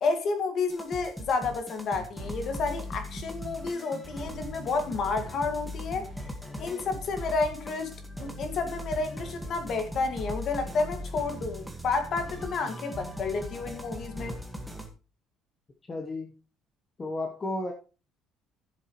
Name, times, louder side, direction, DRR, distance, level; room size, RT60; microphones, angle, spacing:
voice 1, 0.0-6.1 6.6-14.4, left 4 dB, 40° left, 2.0 m, -30 dB
sound 1, 0.7-14.9, equal, ahead, 1.7 m, -39 dB
voice 2, 15.9-16.3 17.0-17.7, left 2 dB, 20° left, 1.1 m, -33 dB
15.0 x 7.4 x 3.1 m
cardioid pair, 165°, 0 cm